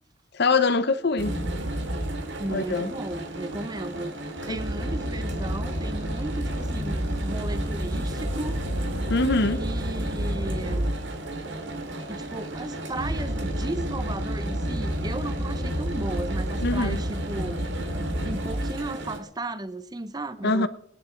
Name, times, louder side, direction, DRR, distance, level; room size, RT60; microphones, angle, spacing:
voice 1, 0.3-1.3 2.5-2.9 4.5-4.6 9.1-9.6 16.6-17.0 20.4-20.7, left 3 dB, 50° left, 0.9 m, -23 dB
sound 1, 1.2-19.2, right 1 dB, 60° right, 2.1 m, -30 dB
voice 2, 2.4-4.2 4.5-8.6 9.4-10.9 12.1-17.6 18.2-20.7, right 2 dB, 20° right, 0.7 m, -35 dB
19.0 x 10.5 x 4.6 m
head